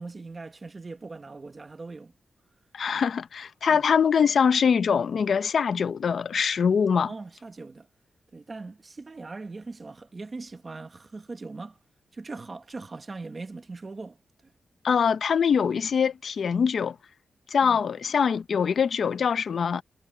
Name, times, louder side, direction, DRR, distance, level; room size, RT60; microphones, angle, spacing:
voice 1, 0.0-2.1 2.9-3.1 3.7-3.8 7.0-7.9 8.3-11.8 12.1-14.2 17.6-17.8, right 3 dB, 30° right, 1.0 m, -40 dB
voice 2, 2.7-7.1 14.8-17.0 17.5-19.8, left 6 dB, 60° left, 0.6 m, -23 dB
wide cardioid pair, 155°, 0 cm